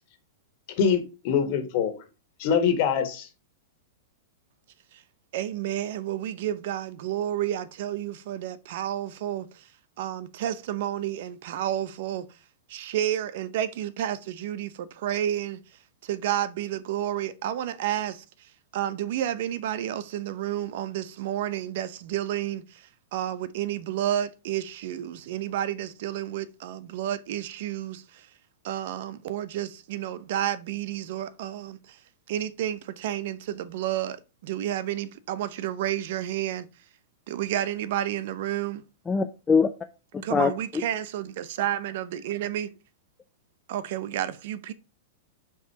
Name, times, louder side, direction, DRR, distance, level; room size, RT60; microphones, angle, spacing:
voice 1, 0.8-2.0 2.4-3.3, left 7 dB, 50° left, 1.7 m, -24 dB
voice 2, 5.3-9.7 10.0-12.2 12.7-15.6 16.0-18.2 18.7-28.3 28.6-32.0 32.3-36.7 37.3-38.9 40.2-42.7 43.7-44.7, right 11 dB, 60° right, 0.7 m, -31 dB
voice 3, 39.1-39.7 40.1-40.8, left 5 dB, 15° left, 0.5 m, -23 dB
5.5 x 4.8 x 4.8 m
hypercardioid pair, 125°, 0 cm